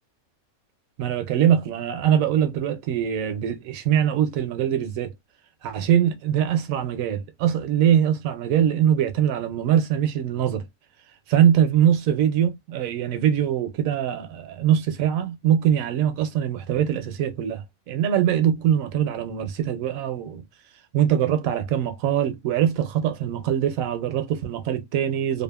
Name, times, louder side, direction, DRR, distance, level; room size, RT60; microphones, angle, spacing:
voice 1, 1.0-5.1 5.6-10.6 11.3-20.4 20.9-25.4, right 9 dB, 75° right, 1.0 m, -22 dB
2.7 x 2.4 x 2.2 m
omnidirectional pair, 1.5 m